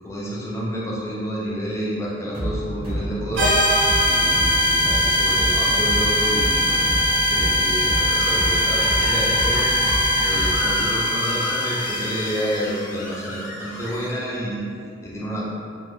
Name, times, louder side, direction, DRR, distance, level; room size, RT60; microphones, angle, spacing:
voice 1, 0.0-3.5 4.0-6.8 7.3-9.7 10.2-15.5, equal, 15° left, -6 dB, 0.4 m, -29 dB
sound 1, 2.3-10.8, equal, 30° right, 0.7 m, -29 dB
sound 2, 3.4-12.7, equal, 80° right, 0.6 m, -21 dB
Screech, 8.1-14.1, left 1 dB, 75° left, 0.4 m, -33 dB
2.2 x 2.1 x 3.1 m, 2.3 s
head